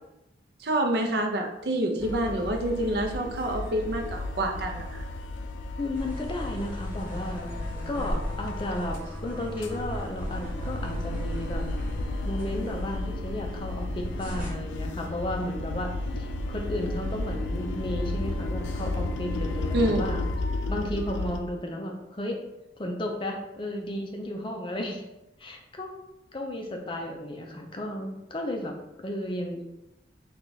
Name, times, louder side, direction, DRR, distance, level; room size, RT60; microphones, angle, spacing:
voice 1, 0.6-5.0 19.7-20.1, right 1 dB, 60° right, 3 dB, 0.5 m, -27 dB
sound 1, 2.0-9.1 9.4-21.4, left 2 dB, 85° left, 0.4 m, -33 dB
voice 2, 5.8-7.6 7.9-11.7 12.2-20.3 20.7-22.4 22.8-25.0 25.4-26.0 26.3-28.8 29.0-29.7, left 1 dB, 25° left, 2 dB, 0.5 m, -34 dB
sound 2, 5.9-14.5, equal, 10° right, 1.1 m, -36 dB
3.4 x 2.4 x 3.9 m, 0.91 s
head